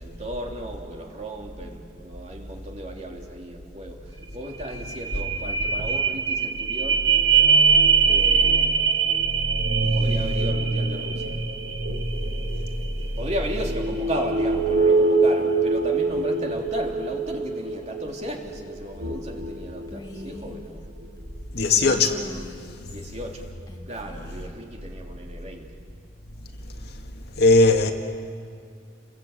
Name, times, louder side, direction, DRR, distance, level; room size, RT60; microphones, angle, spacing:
voice 1, 0.0-7.0 8.0-9.2 9.9-11.4 13.2-20.9 22.9-23.5 23.9-25.7, right 1 dB, 40° right, 3.2 m, -35 dB
sound 1, 4.2-4.3 4.6-20.5 21.0-21.1, right 5 dB, 70° right, 1.8 m, -23 dB
Female speech woman speaking, 19.9-20.6 21.7-23.1 23.7-24.6, left 1 dB, 20° left, 2.1 m, -42 dB
voice 2, 21.5-22.3 26.6-26.9 27.3-27.9, left 3 dB, 60° left, 2.1 m, -19 dB
30.0 x 22.0 x 8.5 m
head